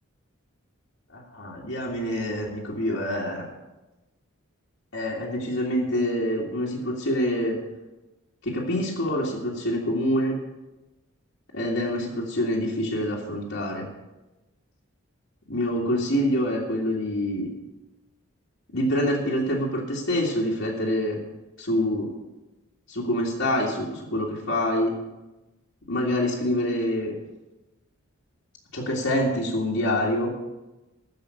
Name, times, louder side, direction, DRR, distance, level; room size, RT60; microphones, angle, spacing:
voice 1, 1.1-3.5 4.9-7.6 8.4-10.4 11.5-13.9 15.5-17.5 18.7-21.2 21.6-22.1 22.9-25.0 25.9-27.2 28.7-30.3, left 1 dB, 70° left, -5 dB, 2.1 m, -26 dB
13.5 x 5.2 x 8.3 m, 1.1 s
head